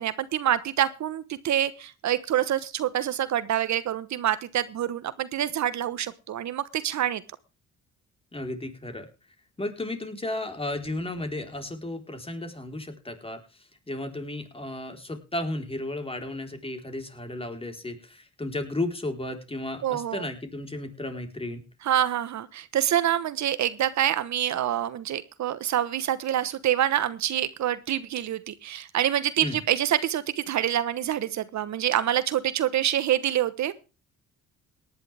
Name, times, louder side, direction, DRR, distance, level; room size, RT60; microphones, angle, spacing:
voice 1, 0.0-7.2 19.8-20.3 21.8-33.8, right 11 dB, 65° right, 15 dB, 1.1 m, -26 dB
voice 2, 8.3-9.1 9.6-21.6 29.4-29.6, left 1 dB, 20° left, 6 dB, 4.0 m, -34 dB
18.0 x 10.5 x 3.4 m, 0.31 s
cardioid pair, 90°, 30 cm